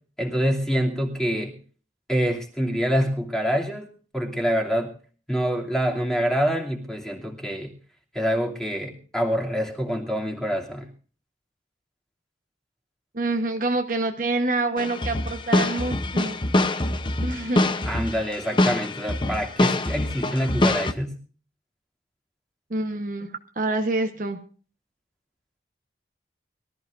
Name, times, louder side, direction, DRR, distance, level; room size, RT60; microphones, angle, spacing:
voice 1, 0.2-1.5 2.1-3.9 4.1-4.9 5.3-7.7 8.1-10.9 17.9-21.1, equal, 5° left, -1 dB, 2.7 m, -26 dB
voice 2, 13.1-16.4 17.2-17.7 22.7-23.3 23.6-24.4, right 2 dB, 45° right, 5 dB, 1.1 m, -26 dB
sound 1, 14.8-20.9, left 2 dB, 25° left, 0.7 m, -24 dB
23.5 x 14.0 x 2.6 m, 0.41 s
head